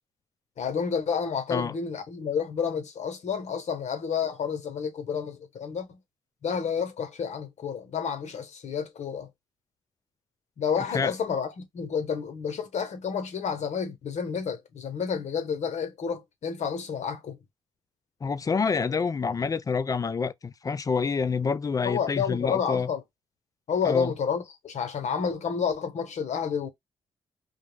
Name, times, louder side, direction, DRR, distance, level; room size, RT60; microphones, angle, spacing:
voice 1, 0.6-6.0 6.4-9.3 10.6-17.4 21.8-23.0 23.7-26.7, left 6 dB, 60° left, 0.8 m, -30 dB
voice 2, 10.8-11.2 18.2-22.9 23.8-24.1, left 5 dB, 25° left, 0.3 m, -27 dB
2.3 x 2.0 x 3.1 m
supercardioid pair, 60°, 13 cm